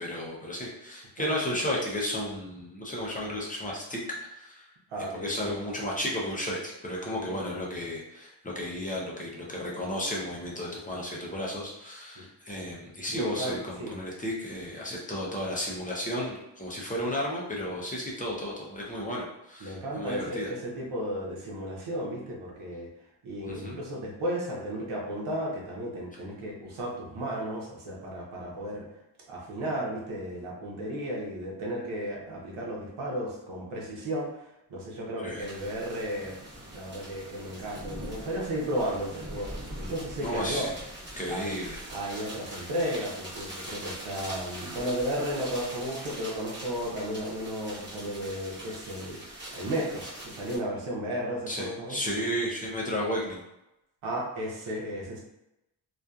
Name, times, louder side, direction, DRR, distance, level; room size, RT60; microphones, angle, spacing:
voice 1, 0.0-4.7 5.2-20.5 23.5-23.8 35.2-35.5 40.2-40.7 41.2-41.8 51.5-53.4, equal, 15° left, -4 dB, 0.5 m, -33 dB
voice 2, 4.9-5.3 12.2-12.3 13.1-13.9 19.6-22.9 23.2-28.9 29.3-34.3 34.7-36.4 36.7-39.5 39.8-40.7 41.3-41.5 41.9-49.2 49.5-52.0 54.0-55.2, equal, 80° right, -3 dB, 0.9 m, -34 dB
sound 1, 35.4-50.6, right 1 dB, 20° right, 0.9 m, -42 dB
2.7 x 2.3 x 2.3 m, 0.90 s
wide cardioid pair, 135°, 48 cm